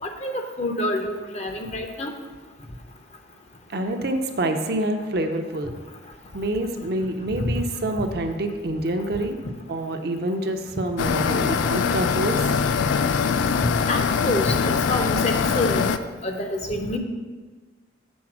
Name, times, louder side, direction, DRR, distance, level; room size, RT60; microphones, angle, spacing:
voice 1, 0.0-2.1 7.4-7.5 13.9-14.6 14.9-15.9 16.2-17.0, left 1 dB, 35° left, 4 dB, 0.6 m, -27 dB
voice 2, 3.7-5.8 6.3-9.4 9.7-12.6, right 1 dB, 55° right, 5 dB, 0.6 m, -27 dB
sound 1, 11.0-16.0, left 6 dB, 85° left, 0.3 m, -22 dB
6.2 x 4.1 x 6.0 m, 1.4 s
head